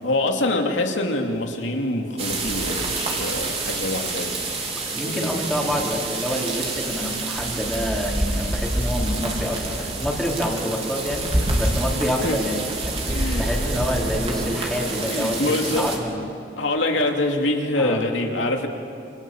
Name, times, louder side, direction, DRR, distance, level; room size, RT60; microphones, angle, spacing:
voice 1, 0.0-4.7 5.0-5.3 5.6-5.8 12.2-12.4 13.1-13.5 15.1-15.8 16.6-18.7, left 2 dB, 85° left, 2 dB, 2.7 m, -25 dB
sound 1, 2.2-16.0, right 2 dB, 35° right, 3.8 m, -27 dB
voice 2, 4.9-12.6 12.8-15.4 15.7-16.2 17.8-18.0, equal, ahead, -4 dB, 4.2 m, -27 dB
28.0 x 28.0 x 7.3 m, 2.5 s
head